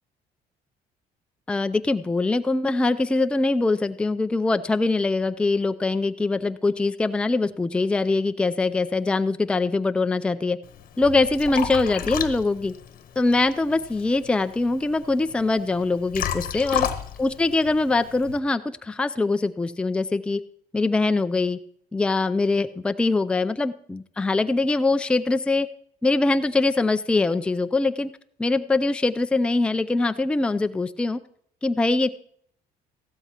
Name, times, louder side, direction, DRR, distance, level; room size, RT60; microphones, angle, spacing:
voice 1, 1.5-10.6 11.0-12.7 13.2-16.9 17.2-20.4 20.7-21.6 21.9-25.7 26.0-28.1 28.4-31.2 31.6-32.1, left 3 dB, 5° left, 9 dB, 0.4 m, -23 dB
Liquid, 10.6-18.4, left 9 dB, 55° left, 1.0 m, -33 dB
15.0 x 13.0 x 2.9 m, 0.66 s
cardioid pair, 110°, 17 cm